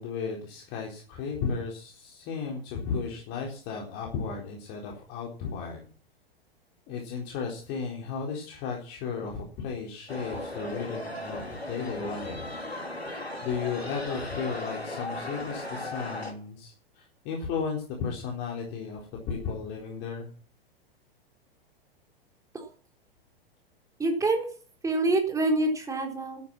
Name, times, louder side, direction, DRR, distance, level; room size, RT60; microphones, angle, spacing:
voice 1, 0.0-5.9 6.9-12.5 13.0-19.0 19.3-20.3, left 5 dB, 35° left, 0 dB, 4.1 m, -34 dB
sound 1, 10.1-16.3, left 1 dB, 90° left, 3.1 m, -37 dB
voice 2, 24.0-24.5 24.8-26.4, right 2 dB, 10° right, 2 dB, 4.0 m, -26 dB
12.5 x 10.0 x 7.5 m, 0.41 s
figure-of-eight pair, 100°, 30 cm